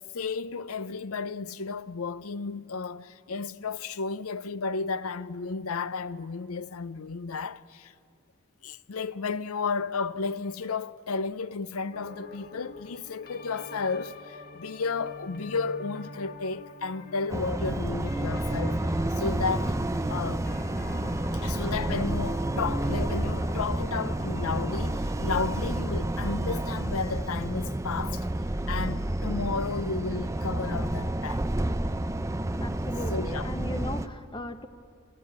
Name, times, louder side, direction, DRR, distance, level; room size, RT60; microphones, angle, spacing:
voice 1, 0.1-7.9 8.6-18.8 19.2-19.8 20.1-20.5 21.3-28.3 28.7-31.5 33.1-33.5, left 4 dB, 85° left, 0.6 m, -33 dB
sound 1, 11.9-25.0, left 3 dB, 45° left, 1.6 m, -45 dB
sound 2, 17.3-34.1, right 1 dB, 15° right, 0.5 m, -30 dB
voice 2, 32.6-34.7, left 1 dB, 25° left, 1.1 m, -37 dB
27.0 x 17.0 x 8.6 m
head